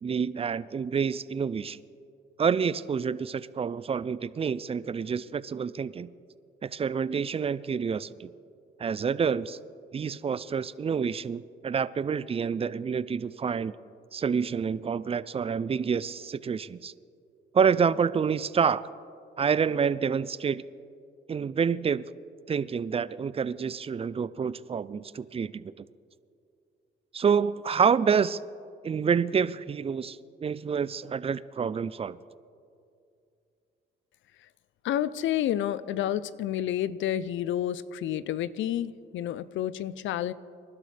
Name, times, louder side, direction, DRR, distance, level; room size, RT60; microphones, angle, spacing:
voice 1, 0.0-1.8 2.4-6.1 6.6-8.3 8.8-9.6 9.9-13.7 14.1-16.9 17.5-18.8 19.4-20.6 21.3-22.1 22.5-25.7 27.1-28.4 28.8-32.2, right 6 dB, 30° right, 17 dB, 0.4 m, -28 dB
voice 2, 34.8-40.3, left 11 dB, 75° left, 17 dB, 0.5 m, -30 dB
25.5 x 12.0 x 3.4 m, 2.5 s
cardioid pair, 90°, 20 cm